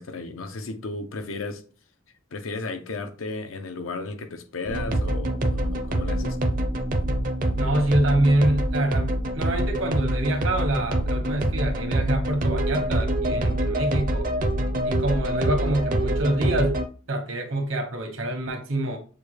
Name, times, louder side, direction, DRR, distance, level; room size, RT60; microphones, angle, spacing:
voice 1, 0.0-1.6 2.3-6.5, left 3 dB, 85° left, 0.6 m, -34 dB
sound 1, 4.7-16.8, right 1 dB, 45° right, 0.5 m, -25 dB
voice 2, 7.6-14.3 14.8-16.7 17.1-19.0, right 1 dB, 75° right, 1.2 m, -26 dB
6.7 x 2.3 x 3.2 m
head